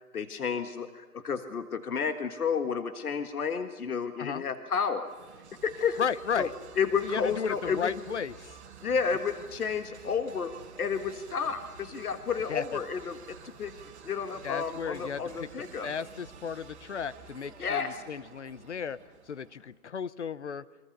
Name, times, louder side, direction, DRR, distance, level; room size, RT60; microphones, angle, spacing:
voice 1, 0.1-5.1 5.6-6.0 6.4-7.9 8.8-13.8 14.0-15.9 17.6-18.0, left 6 dB, 80° left, 10 dB, 1.7 m, -31 dB
sound 1, 5.0-19.7, right 6 dB, 50° right, 2.7 m, -50 dB
voice 2, 6.0-6.5 7.0-8.6 12.5-12.8 14.4-15.5 15.8-19.0 19.3-20.7, left 7 dB, 50° left, 17 dB, 0.8 m, -34 dB
27.5 x 24.0 x 6.7 m, 1.3 s
hypercardioid pair, 170°, 44 cm